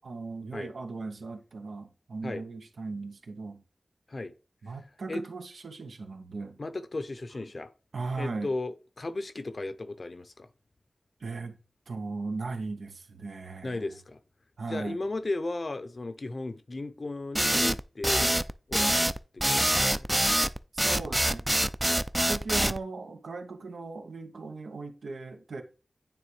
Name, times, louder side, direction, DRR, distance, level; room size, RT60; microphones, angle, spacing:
voice 1, 0.0-3.6 4.6-6.6 7.9-8.5 11.2-11.6 11.9-13.9 14.6-15.0 20.7-21.6 22.3-25.6, right 3 dB, 90° right, 0.8 m, -38 dB
voice 2, 6.6-7.7 8.2-10.5 13.6-14.2 14.7-18.3 18.7-19.1 19.3-20.1, left 2 dB, 60° left, 0.7 m, -35 dB
sound 1, 17.3-22.8, right 1 dB, 15° right, 0.4 m, -25 dB
9.2 x 3.5 x 3.2 m
cardioid pair, 45°, 0 cm